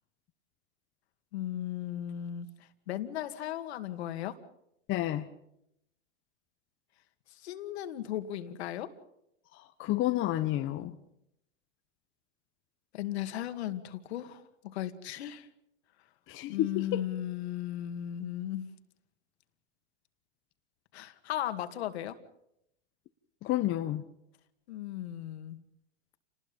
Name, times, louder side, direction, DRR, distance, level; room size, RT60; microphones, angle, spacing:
voice 1, 1.3-4.4 7.3-8.9 12.9-14.4 14.7-15.5 16.5-18.7 20.9-22.2 24.7-25.6, left 12 dB, 70° left, 2.3 m, -36 dB
voice 2, 4.9-5.3 9.8-10.9 16.3-17.0 23.4-24.0, left 14 dB, 35° left, 1.3 m, -30 dB
29.0 x 20.0 x 5.5 m
hypercardioid pair, 120°, 33 cm